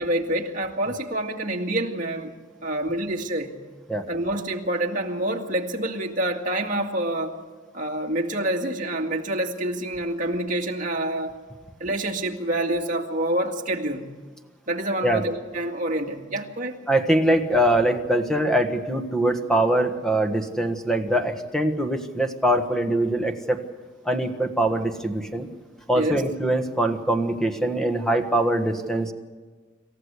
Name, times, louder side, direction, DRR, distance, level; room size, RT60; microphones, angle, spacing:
voice 1, 0.0-2.3 2.6-3.5 4.1-7.4 7.7-11.3 11.8-14.1 14.7-16.8 25.9-26.2, right 1 dB, 45° right, 1 dB, 2.2 m, -27 dB
voice 2, 16.9-23.6 24.0-25.5 25.9-29.1, right 1 dB, 5° left, 6 dB, 1.5 m, -23 dB
27.5 x 14.5 x 8.2 m, 1.4 s
head